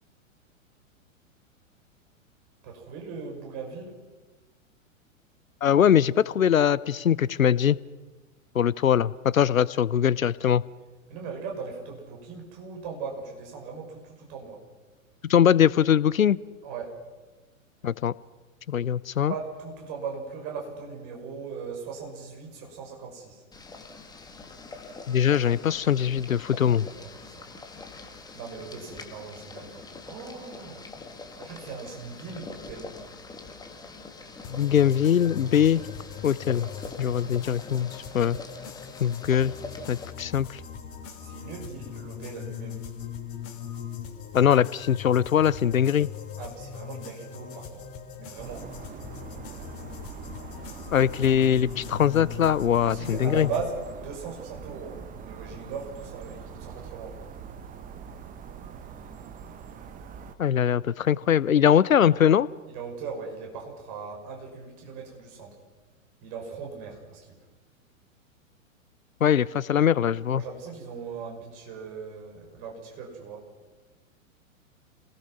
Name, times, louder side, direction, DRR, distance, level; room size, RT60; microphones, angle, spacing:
voice 1, 2.6-4.0 11.1-14.6 16.6-16.9 19.3-23.4 26.9-27.5 28.3-30.8 31.4-33.0 41.1-42.9 46.4-47.8 48.2-48.7 52.8-57.2 62.7-65.6 66.2-67.3 70.3-73.5, right 5 dB, 40° right, 1 dB, 6.2 m, -39 dB
voice 2, 5.6-7.8 8.5-10.6 15.3-16.4 17.8-18.1 18.7-19.3 25.1-26.9 34.5-35.8 36.2-36.7 37.0-38.4 39.0-39.5 39.9-40.6 44.3-46.1 50.9-53.5 60.4-62.5 69.2-70.4, left 9 dB, 75° left, 21 dB, 0.7 m, -22 dB
Boiling, 23.5-40.1, left 3 dB, 10° left, 1.9 m, -44 dB
sound 1, 34.4-53.6, left 8 dB, 35° left, 3.3 m, -40 dB
sound 2, 48.4-60.4, right 7 dB, 20° right, 1.1 m, -43 dB
27.5 x 19.0 x 6.1 m, 1.3 s
figure-of-eight pair, 105°, 41 cm